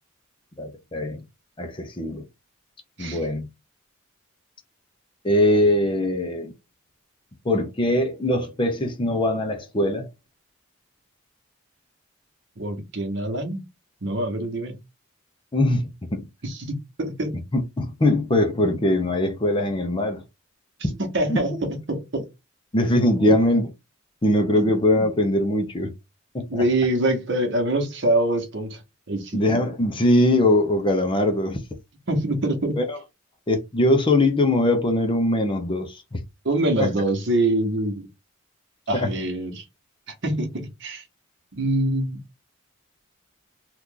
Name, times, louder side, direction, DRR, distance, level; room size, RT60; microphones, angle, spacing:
voice 1, 0.6-1.2 1.6-2.2 3.0-3.5 5.2-6.5 7.4-10.1 15.5-16.2 17.5-20.2 21.3-21.4 22.7-23.7 24.2-25.9 26.3-26.6 29.3-31.6 32.8-33.0 33.5-36.2 36.8-36.9 38.9-39.1, left 1 dB, 25° left, 0.6 m, -21 dB
voice 2, 12.6-13.6 14.0-14.8 16.4-17.4 21.0-22.3 23.3-23.4 24.6-24.7 26.5-28.8 29.1-29.4 32.1-32.8 36.4-38.1 38.9-39.6 40.2-41.0 41.5-42.2, right 1 dB, 55° right, 1.0 m, -25 dB
2.9 x 2.4 x 3.6 m
head